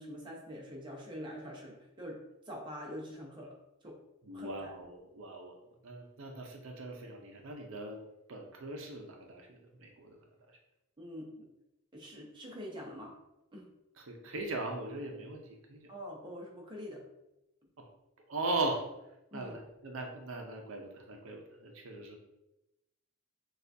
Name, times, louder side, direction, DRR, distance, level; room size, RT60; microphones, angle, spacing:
voice 1, 0.0-3.6 3.8-4.0 4.3-4.7 11.0-11.5 11.9-13.2 13.5-13.7 15.9-17.0 19.3-19.5, equal, 20° right, -1 dB, 0.8 m, -45 dB
voice 2, 4.2-8.0 8.3-10.2 10.5-10.6 14.0-15.9 17.8-17.9 18.3-18.9 19.3-22.2, right 2 dB, 70° right, 3 dB, 0.6 m, -39 dB
6.5 x 2.3 x 2.6 m, 0.92 s
head